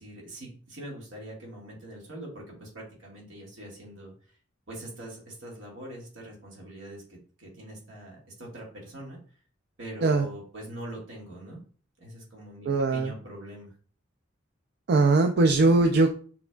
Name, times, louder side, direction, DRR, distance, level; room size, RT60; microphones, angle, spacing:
voice 1, 0.0-4.1 4.7-9.2 9.8-11.6 12.0-13.7, right 1 dB, 75° right, -2 dB, 1.9 m, -43 dB
voice 2, 12.7-13.1 14.9-16.1, right 3 dB, 55° right, 5 dB, 0.4 m, -21 dB
6.0 x 3.3 x 2.3 m, 0.43 s
head